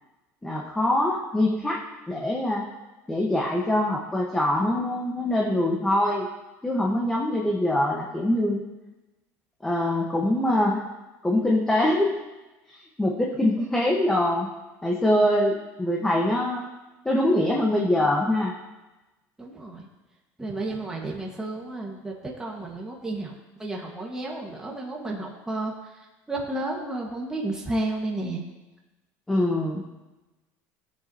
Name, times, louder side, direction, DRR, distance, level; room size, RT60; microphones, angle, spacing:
voice 1, 0.4-2.7 3.1-6.3 6.6-8.7 9.6-10.8 11.2-12.2 12.7-14.5 14.8-16.7 17.0-18.5 29.3-29.8, left 1 dB, 10° left, -2 dB, 1.3 m, -24 dB
voice 2, 19.4-19.9 20.4-23.3 23.6-25.7 26.3-28.4, right 2 dB, 10° right, -2 dB, 1.6 m, -32 dB
17.0 x 8.0 x 2.9 m, 1.1 s
cardioid pair, 135°, 7 cm